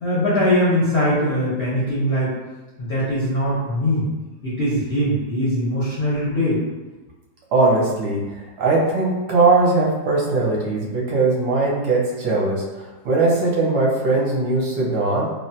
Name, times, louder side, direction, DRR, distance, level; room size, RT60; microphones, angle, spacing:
voice 1, 0.0-2.3 2.8-4.0 4.4-6.6, equal, 65° left, -7 dB, 0.6 m, -21 dB
voice 2, 7.5-12.6 13.0-15.2, right 3 dB, 70° right, -3 dB, 1.2 m, -20 dB
3.2 x 2.1 x 2.7 m, 1.2 s
omnidirectional pair, 2.0 m